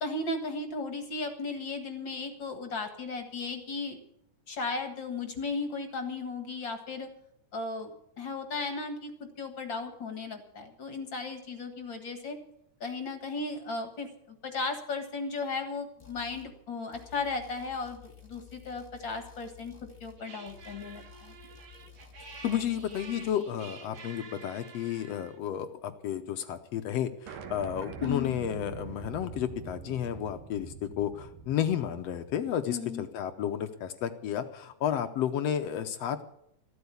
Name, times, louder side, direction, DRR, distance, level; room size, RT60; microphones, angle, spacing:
voice 1, 0.0-4.0 4.5-7.1 7.5-9.1 9.4-12.4 12.8-19.7 20.0-21.3 28.0-28.4 32.7-33.0, left 3 dB, 45° left, 6 dB, 1.9 m, -35 dB
sound 1, 16.0-16.5 16.9-20.2 20.5-23.4, left 6 dB, 10° left, 2.3 m, -53 dB
sound 2, 20.2-25.4, right 4 dB, 50° right, 1.1 m, -49 dB
voice 2, 22.4-36.2, left 10 dB, 70° left, 9 dB, 1.6 m, -32 dB
sound 3, 27.3-32.6, right 6 dB, 80° right, 3.0 m, -44 dB
15.0 x 13.0 x 6.9 m, 0.76 s
omnidirectional pair, 3.7 m